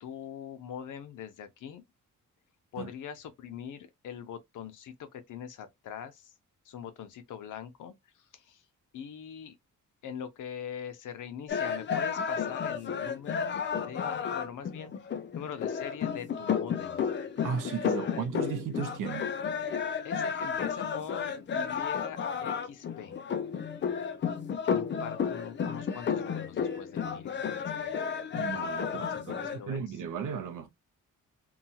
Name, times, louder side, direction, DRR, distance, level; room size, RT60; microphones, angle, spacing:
voice 1, 0.0-1.8 2.7-6.3 6.6-8.6 8.9-9.6 10.0-15.1 15.3-17.1 18.1-18.2 20.0-23.1 24.6-27.9 28.9-30.0, left 8 dB, 70° left, 0.7 m, -43 dB
sound 1, 11.5-29.6, left 7 dB, 35° left, 0.4 m, -32 dB
voice 2, 17.4-19.3 28.3-30.7, right 7 dB, 75° right, 0.7 m, -35 dB
2.8 x 2.3 x 2.7 m
cardioid pair, 115°, 32 cm